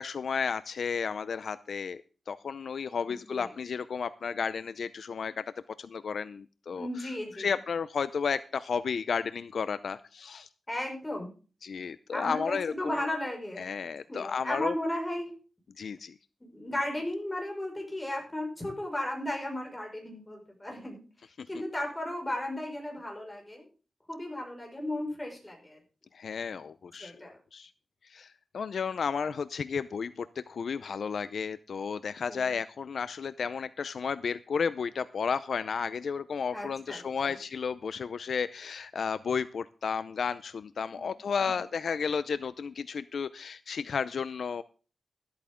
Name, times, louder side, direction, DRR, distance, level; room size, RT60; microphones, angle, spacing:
voice 1, 0.0-2.0 2.3-5.4 5.8-7.1 7.4-10.5 11.6-13.1 13.6-14.7 15.8-16.1 21.4-21.5 26.1-27.2 27.5-27.7 28.0-44.6, left 6 dB, 65° left, 14 dB, 0.5 m, -33 dB
voice 2, 6.8-7.5 10.7-11.3 12.1-13.7 14.1-15.3 16.4-21.0 21.5-23.7 24.1-25.8 27.0-27.3 32.2-32.5 36.5-37.4 40.9-41.1 41.4-41.6, left 1 dB, 15° left, 1 dB, 5.4 m, -35 dB
13.5 x 13.0 x 3.7 m, 0.36 s
wide cardioid pair, 140°, 0 cm